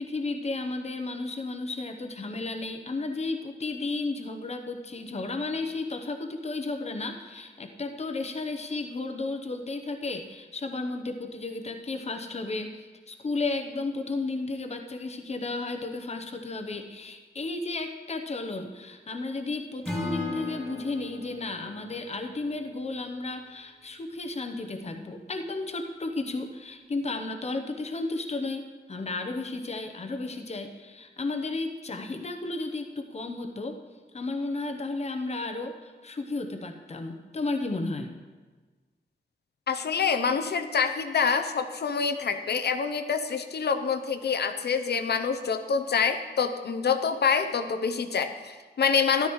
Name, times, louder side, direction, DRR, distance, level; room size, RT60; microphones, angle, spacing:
voice 1, 0.0-33.8 34.1-38.1, left 3 dB, 40° left, 6 dB, 0.8 m, -33 dB
Acoustic guitar / Strum, 19.8-23.0, left 2 dB, ahead, 2.6 m, -37 dB
voice 2, 39.7-49.3, left 6 dB, 75° left, 8 dB, 0.7 m, -26 dB
13.0 x 12.0 x 3.1 m, 1.4 s
wide cardioid pair, 155°, 17 cm